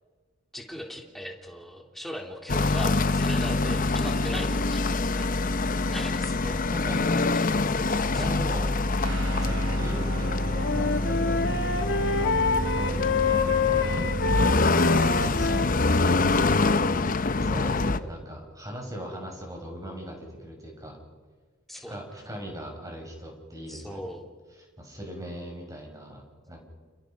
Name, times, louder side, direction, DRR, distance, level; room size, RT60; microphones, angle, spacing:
voice 1, 0.5-6.5 8.1-8.2 21.7-22.0 23.7-24.2, equal, ahead, 1 dB, 3.5 m, -39 dB
sound 1, 2.5-18.0, left 3 dB, 45° left, 0.8 m, -25 dB
voice 2, 5.8-7.3 8.1-8.7 9.3-14.0 14.9-21.0 21.7-24.1 24.6-26.6, equal, 20° right, 1 dB, 6.7 m, -40 dB
Guitar, 9.0-17.8, right 1 dB, 85° right, 3.7 m, -40 dB
Wind instrument woodwind instrument, 10.2-16.7, left 4 dB, 65° left, 1.6 m, -27 dB
29.5 x 28.5 x 5.3 m, 1.4 s
head